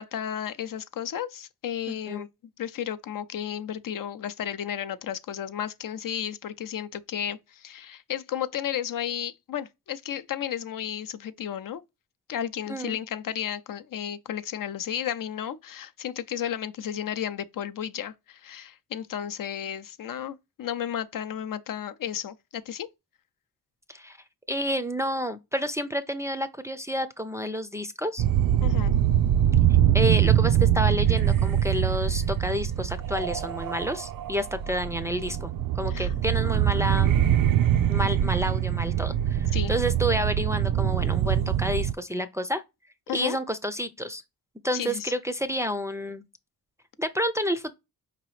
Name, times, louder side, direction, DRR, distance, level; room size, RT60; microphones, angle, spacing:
voice 1, 0.0-2.3 2.6-11.8 12.3-22.9 28.6-29.0 35.9-36.1 39.5-39.7 43.1-43.4 44.7-45.1, left 9 dB, 60° left, 0.6 m, -33 dB
voice 2, 24.5-28.2 29.9-37.1 37.9-42.6 43.1-44.2 44.6-46.2 47.0-47.7, equal, 10° right, 0.5 m, -29 dB
sound 1, 28.2-41.9, right 11 dB, 65° right, 0.5 m, -23 dB
4.8 x 2.9 x 3.1 m
cardioid pair, 70°, 37 cm